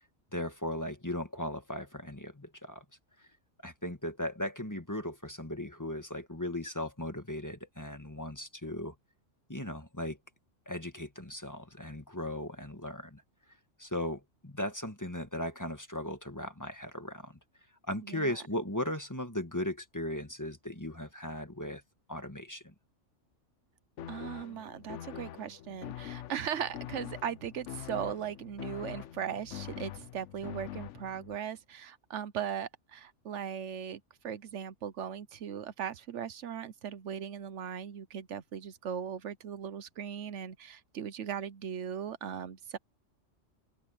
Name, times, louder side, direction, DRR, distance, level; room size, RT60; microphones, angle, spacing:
voice 1, 0.3-2.8 3.2-3.3 3.6-8.9 9.5-10.2 10.6-13.2 13.8-17.4 17.9-21.8 22.1-22.7, left 1 dB, 15° left, 1.7 m, -37 dB
sound 1, 24.0-31.4, left 12 dB, 75° left, 1.0 m, -44 dB
voice 2, 24.1-42.8, right 8 dB, 75° right, 1.1 m, -38 dB
open air
omnidirectional pair, 1.3 m